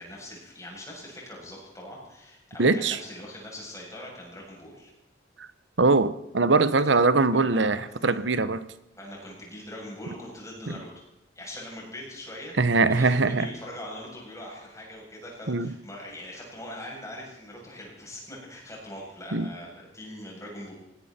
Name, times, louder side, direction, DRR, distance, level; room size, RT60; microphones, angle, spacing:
voice 1, 0.0-4.9 7.3-7.9 9.0-11.0 11.3-12.5 12.8-20.7, left 1 dB, 15° left, -3 dB, 7.8 m, -42 dB
voice 2, 2.6-3.0 5.4-5.5 5.8-8.6 12.6-13.5 15.5-15.7 19.3-19.4, right 3 dB, 75° right, 15 dB, 1.0 m, -22 dB
20.0 x 16.5 x 4.4 m, 0.89 s
head